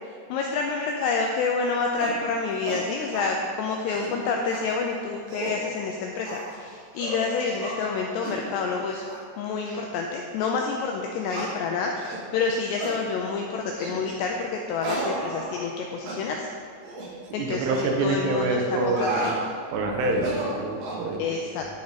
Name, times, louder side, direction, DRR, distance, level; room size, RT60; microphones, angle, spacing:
voice 1, 0.3-9.1 9.4-16.5 17.3-19.3 21.2-21.7, left 4 dB, 90° left, 1 dB, 2.4 m, -28 dB
sound 1, 2.0-2.2 2.6-2.8 3.1-3.3 3.7-4.1 4.5-4.6 5.1-5.6 6.2-6.5 6.9-7.2 7.6-7.8 8.2-8.4 9.0-9.2 9.6-9.8 10.4-10.5 11.3-11.5 12.0-12.2 12.8-13.0 13.7-14.0 14.8-15.8 16.1-16.2 16.8-17.1 17.7-17.9 18.7-19.4 20.1-21.0, right 2 dB, 55° right, 2.9 m, -33 dB
voice 2, 17.3-19.3 19.7-21.7, right 2 dB, 80° right, 1 dB, 3.5 m, -27 dB
10.5 x 8.5 x 4.0 m, 2.4 s
omnidirectional pair, 5.6 m